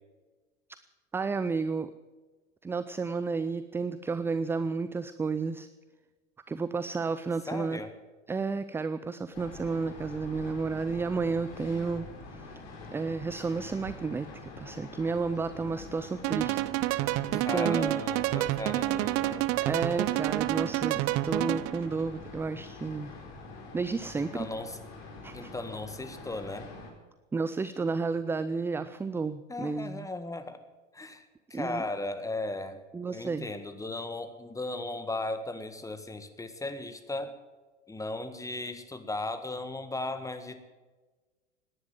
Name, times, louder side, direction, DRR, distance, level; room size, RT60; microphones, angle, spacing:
voice 1, 1.1-1.9 2.6-5.7 6.5-7.8 8.3-12.1 12.3-12.5 12.9-14.3 14.6-16.6 17.3-18.0 19.6-23.1 23.7-24.5 25.2-25.5 27.3-30.1 31.5-31.8 32.9-33.5, right 4 dB, 5° right, 13 dB, 0.4 m, -31 dB
voice 2, 7.5-7.9 17.3-19.5 24.2-24.8 25.3-26.7 29.5-30.6 30.9-31.3 31.5-32.8 33.1-37.3 37.9-40.6, left 2 dB, 10° left, 10 dB, 1.8 m, -36 dB
sound 1, 9.3-26.9, left 3 dB, 50° left, 4.7 m, -46 dB
sound 2, 16.2-21.9, right 18 dB, 40° right, 0.7 m, -29 dB
18.0 x 10.5 x 7.5 m, 1.3 s
figure-of-eight pair, 90°, 37 cm